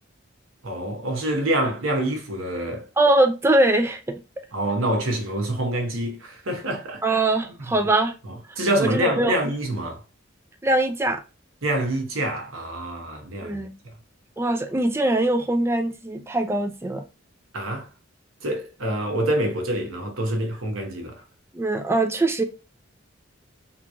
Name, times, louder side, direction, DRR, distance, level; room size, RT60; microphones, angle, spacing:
voice 1, 0.6-2.9 4.5-7.2 7.6-7.7 8.6-10.0 11.6-13.6 13.8-13.9 17.5-17.9 18.4-21.2, right 1 dB, 85° right, 1.0 m, -26 dB
voice 2, 3.0-4.2 7.0-8.1 8.8-9.4 10.6-11.2 13.4-13.7 14.4-17.1 21.5-22.4, right 2 dB, 10° right, 0.3 m, -22 dB
3.6 x 2.9 x 2.3 m
head